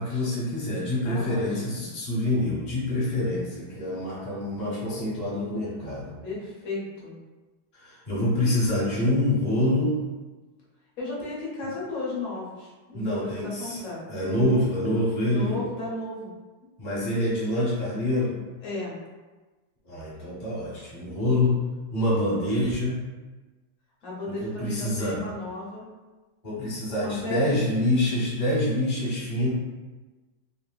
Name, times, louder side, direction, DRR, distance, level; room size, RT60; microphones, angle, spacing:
voice 1, 0.0-6.2 7.7-9.9 12.9-13.8 14.1-15.5 16.8-18.3 19.8-21.6 21.9-23.0 24.4-25.2 26.4-29.5, left 1 dB, 30° left, -7 dB, 1.0 m, -26 dB
voice 2, 1.0-1.9 6.2-7.1 11.0-14.0 15.3-16.3 18.6-19.0 24.0-25.8 26.9-27.6, left 2 dB, 50° left, -5 dB, 1.1 m, -34 dB
3.2 x 2.8 x 2.2 m, 1.2 s
omnidirectional pair, 2.1 m